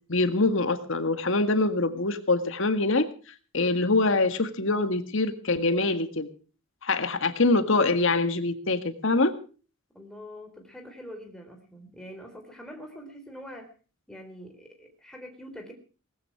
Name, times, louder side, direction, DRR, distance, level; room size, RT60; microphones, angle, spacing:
voice 1, 0.1-3.1 3.5-6.3 6.8-9.3, left 2 dB, 65° left, 9 dB, 1.8 m, -24 dB
voice 2, 9.9-13.7 14.1-15.7, equal, 5° left, 2 dB, 4.0 m, -44 dB
19.0 x 14.5 x 4.8 m, 0.38 s
head